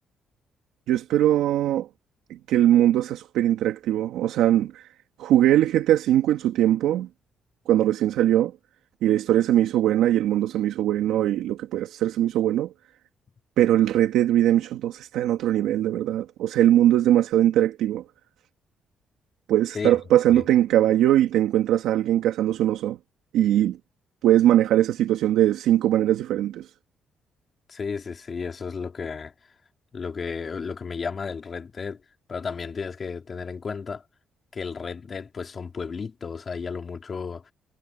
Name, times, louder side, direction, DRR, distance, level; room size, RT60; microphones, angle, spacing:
voice 1, 0.9-1.9 2.3-4.9 5.2-7.1 7.7-8.5 9.0-12.7 13.6-18.0 19.5-23.0 23.3-23.8 24.2-26.7, right 12 dB, 90° right, 2.3 m, -21 dB
voice 2, 27.7-29.3 29.9-32.0 32.3-34.0 34.5-37.5, left 5 dB, 40° left, 3.7 m, -33 dB
cardioid pair, 90°, 0 cm